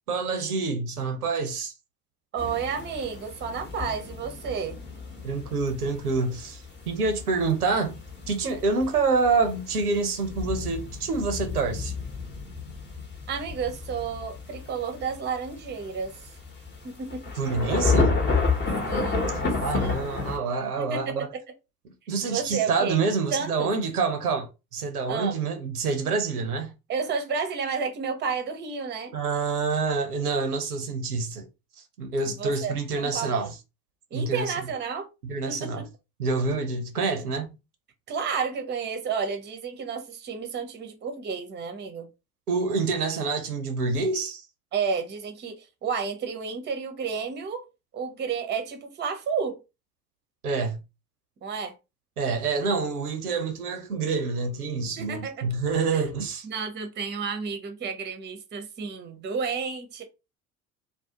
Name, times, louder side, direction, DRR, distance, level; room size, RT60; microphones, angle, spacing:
voice 1, 0.1-1.7 5.2-11.9 17.4-18.2 19.3-21.3 22.1-26.7 29.1-31.5 31.8-33.5 34.1-34.5 35.2-35.8 36.2-37.6 42.5-44.5 50.4-50.8 52.2-56.5, right 4 dB, 80° right, 0.6 m, -27 dB
voice 2, 2.3-4.8 13.3-16.3 16.8-17.3 18.9-20.1 20.8-21.4 22.2-23.0 23.3-23.7 25.1-25.4 26.9-29.1 32.2-33.5 34.1-35.1 35.5-35.9 38.1-42.1 44.7-47.7 47.9-49.6 51.4-51.7 55.0-55.5 55.9-56.0 56.4-60.0, right 6 dB, 25° right, 0.6 m, -31 dB
sound 1, 2.4-20.4, left 4 dB, 25° left, 0.9 m, -31 dB
2.5 x 2.0 x 2.7 m
figure-of-eight pair, 65°, 44 cm